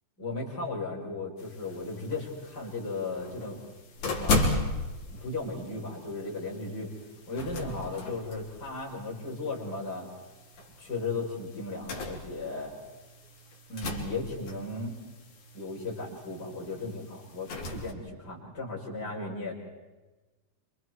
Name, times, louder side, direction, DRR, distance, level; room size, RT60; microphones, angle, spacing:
voice 1, 0.2-3.6 4.0-4.4 5.1-6.9 7.3-10.1 10.8-12.7 13.7-14.9 15.5-19.5, left 3 dB, 20° left, -3 dB, 6.6 m, -36 dB
sound 1, 1.4-17.9, left 2 dB, 40° left, 4.5 m, -37 dB
28.5 x 28.0 x 4.8 m, 1.2 s
omnidirectional pair, 5.6 m